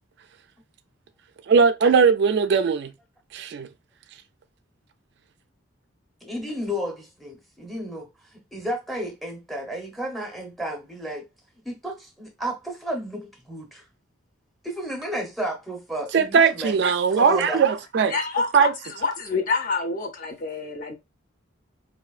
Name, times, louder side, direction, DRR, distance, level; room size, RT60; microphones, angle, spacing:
voice 1, 1.5-2.9 3.3-3.7 16.1-18.1 18.5-18.7, right 6 dB, 60° right, 0.3 m, -19 dB
voice 2, 6.2-11.2 11.6-13.8 14.6-16.7 17.1-17.6, equal, ahead, 0.8 m, -32 dB
voice 3, 18.1-20.9, left 4 dB, 45° left, 0.7 m, -27 dB
4.3 x 2.6 x 2.3 m
head